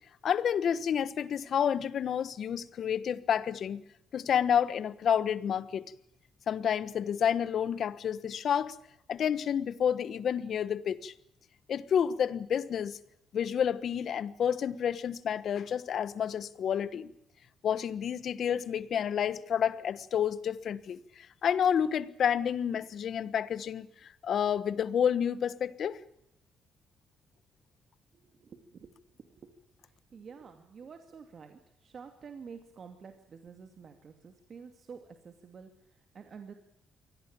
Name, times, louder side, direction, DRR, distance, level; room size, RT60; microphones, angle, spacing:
voice 1, 0.2-3.8 4.1-5.8 6.5-8.8 9.1-11.1 11.7-13.0 13.3-17.1 17.6-21.0 21.4-23.9 24.2-26.0, left 8 dB, 60° left, 1.3 m, -29 dB
voice 2, 28.1-29.5 29.8-36.5, right 6 dB, 50° right, 2.5 m, -50 dB
24.0 x 17.5 x 8.9 m
cardioid pair, 90°, 0 cm